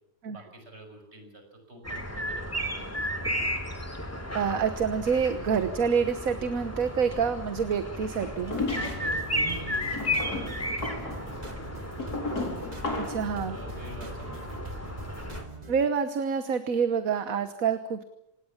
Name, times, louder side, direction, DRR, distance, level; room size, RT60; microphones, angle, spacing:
voice 1, 0.3-2.9 8.7-11.9 13.5-15.0, right 1 dB, 40° right, 4 dB, 6.4 m, -45 dB
sound 1, 1.8-15.4, equal, 10° left, 2.9 m, -34 dB
voice 2, 4.3-8.6 13.0-13.6 15.7-18.0, right 6 dB, 60° right, 10 dB, 1.6 m, -27 dB
sound 2, 8.2-9.2 9.8-13.3, left 2 dB, 75° left, 4.6 m, -34 dB
sound 3, 8.4-15.9, right 1 dB, 25° right, 2.3 m, -43 dB
26.5 x 19.0 x 7.2 m, 0.83 s
omnidirectional pair, 1.7 m